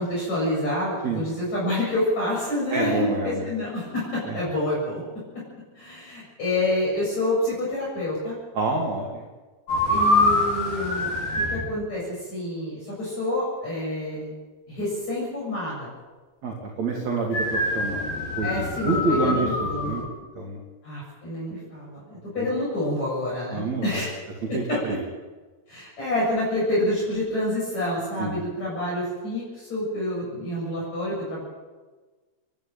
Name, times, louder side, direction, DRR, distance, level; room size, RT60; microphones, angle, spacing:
voice 1, 0.0-5.0 5.8-8.4 9.9-11.1 11.5-14.3 14.7-15.9 18.4-20.1 20.8-24.1 24.7-24.8 25.7-31.4, left 1 dB, 40° left, -6 dB, 8.5 m, -28 dB
voice 2, 2.7-3.5 4.3-4.4 8.5-9.2 16.4-18.0 18.4-20.0 20.4-20.6 22.4-22.5 23.5-24.0 24.5-25.0 28.2-28.4, right 3 dB, 45° right, -1 dB, 3.7 m, -27 dB
sound 1, 9.7-11.7 17.3-20.0, left 2 dB, 60° left, 6.7 m, -24 dB
29.5 x 12.5 x 9.0 m, 1.3 s
omnidirectional pair, 4.7 m